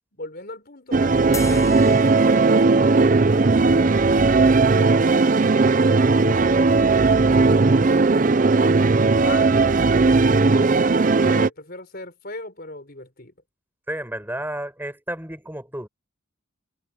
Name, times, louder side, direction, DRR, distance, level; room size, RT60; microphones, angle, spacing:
voice 1, 0.1-5.5 6.2-8.3 8.9-13.3, left 2 dB, 45° left, 5.0 m, -39 dB
sound 1, 0.9-11.5, right 3 dB, 40° right, 0.5 m, -17 dB
sound 2, 1.3-2.9, left 5 dB, 15° left, 6.3 m, -38 dB
voice 2, 13.9-15.9, right 1 dB, 10° right, 7.5 m, -31 dB
head